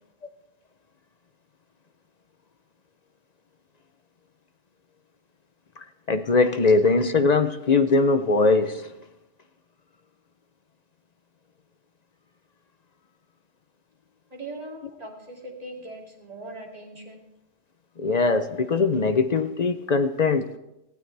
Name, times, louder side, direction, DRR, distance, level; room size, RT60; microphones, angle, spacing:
voice 1, 6.1-8.9 18.0-20.6, left 3 dB, 45° left, 0.6 m, -21 dB
voice 2, 14.3-17.2, right 2 dB, 30° right, 2.8 m, -40 dB
19.0 x 15.5 x 3.4 m
omnidirectional pair, 1.3 m